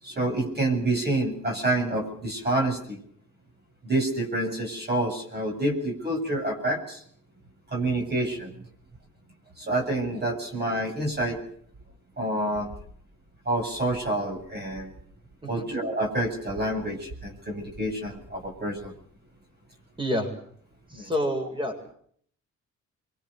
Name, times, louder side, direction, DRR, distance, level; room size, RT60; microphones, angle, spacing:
voice 1, 0.0-3.0 3.8-7.0 7.7-8.5 9.6-11.4 12.2-12.7 13.5-14.9 15.5-18.9 20.9-21.1, right 1 dB, 35° right, 3 dB, 7.2 m, -28 dB
voice 2, 20.0-20.3 20.9-21.9, equal, 15° right, 4 dB, 7.5 m, -28 dB
25.5 x 23.5 x 6.6 m, 0.62 s
cardioid pair, 90°, 30 cm